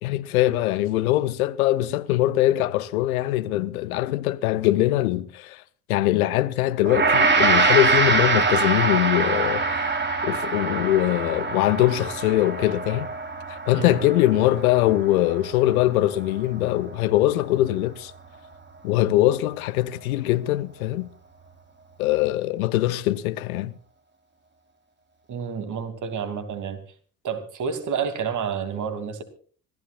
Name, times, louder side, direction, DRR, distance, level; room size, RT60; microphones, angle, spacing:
voice 1, 0.0-5.6 5.9-9.9 10.2-13.1 13.5-18.1 18.8-21.1 22.0-23.7, left 15 dB, 70° left, 0.9 m, -22 dB
Gong, 6.8-16.2, right 4 dB, 25° right, 3.7 m, -24 dB
voice 2, 25.3-26.8 27.2-29.2, right 6 dB, 40° right, 2.9 m, -29 dB
26.0 x 14.5 x 2.5 m
figure-of-eight pair, 60°, 44 cm